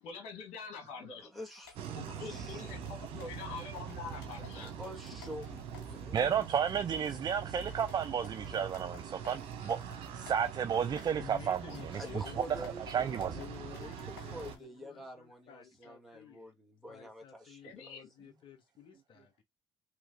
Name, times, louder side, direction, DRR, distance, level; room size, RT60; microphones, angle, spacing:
voice 1, 0.0-1.3 1.9-4.7 9.6-9.7 16.1-16.2 17.6-18.1, left 5 dB, 70° left, 1.9 m, -45 dB
voice 2, 1.2-2.0 2.3-2.6 4.5-6.4 11.8-17.9, equal, ahead, 1.8 m, -48 dB
sound 1, 1.6-14.6, left 7 dB, 90° left, 1.1 m, -57 dB
sound 2, 1.8-14.6, right 7 dB, 65° right, 0.9 m, -44 dB
voice 3, 6.1-11.6 12.9-13.4, right 8 dB, 40° right, 0.4 m, -32 dB
voice 4, 11.1-16.5 16.9-19.4, left 8 dB, 50° left, 1.3 m, -52 dB
3.2 x 3.1 x 2.2 m
hypercardioid pair, 65°, 11 cm